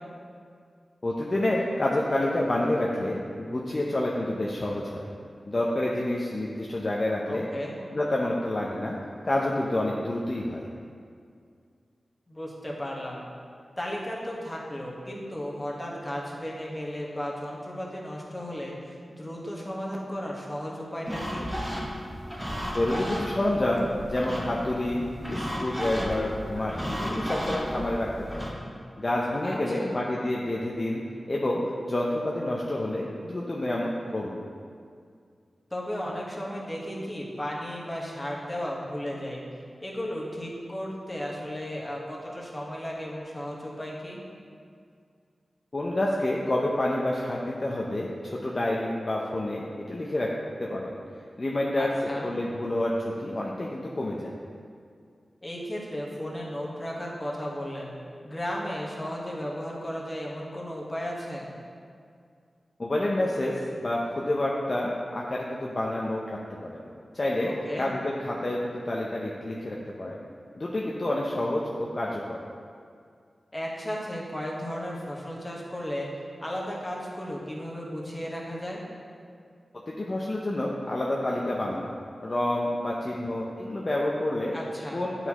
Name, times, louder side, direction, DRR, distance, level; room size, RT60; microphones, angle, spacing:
voice 1, 1.0-5.1 5.5-7.5 7.9-9.0 9.2-10.7 22.7-28.5 29.0-31.0 31.3-31.6 31.9-34.4 45.7-50.3 50.6-51.0 51.4-51.9 52.2-54.4 62.8-66.9 67.1-67.5 67.8-70.2 70.6-72.4 79.9-81.9 82.2-84.5 84.9-85.3, left 1 dB, 40° left, -3 dB, 0.6 m, -28 dB
voice 2, 7.3-7.8 12.3-13.2 13.8-21.5 29.4-30.0 35.7-39.4 39.8-44.2 51.8-52.3 55.4-57.9 58.2-61.5 67.4-67.9 73.5-76.1 76.4-78.8 84.5-85.0, equal, 20° left, -4 dB, 1.2 m, -35 dB
sound 1, 21.1-28.5, equal, 5° right, 1.0 m, -34 dB
9.1 x 4.2 x 2.9 m, 2.2 s
wide cardioid pair, 70°, 0 cm